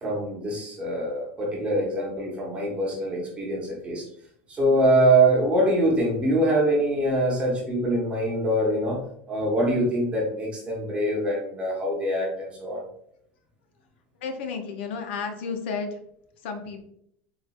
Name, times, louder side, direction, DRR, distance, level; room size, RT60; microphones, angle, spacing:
voice 1, 0.0-4.0 4.5-12.8, right 1 dB, 20° right, -3 dB, 0.8 m, -24 dB
voice 2, 14.2-15.9 16.4-16.8, left 5 dB, 85° left, 6 dB, 0.6 m, -32 dB
4.0 x 2.4 x 2.3 m, 0.72 s
supercardioid pair, 145°, 6 cm